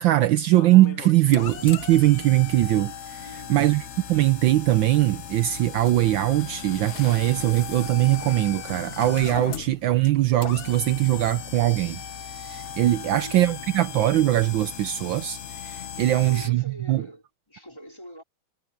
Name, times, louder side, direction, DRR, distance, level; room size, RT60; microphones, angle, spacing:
voice 1, 0.0-12.0 12.4-17.0, right 15 dB, 75° right, 1.3 m, -21 dB
Homemade hydraulic hoist, 0.5-16.5, left 8 dB, 55° left, 0.7 m, -37 dB
voice 2, 3.2-3.8 12.9-13.7 16.0-18.2, equal, 10° left, 4.4 m, -44 dB
sound 1, 5.9-11.2 12.5-12.7 13.0-13.1 13.7-13.8 14.5-14.8, left 7 dB, 75° left, 2.4 m, -48 dB
omnidirectional pair, 2.3 m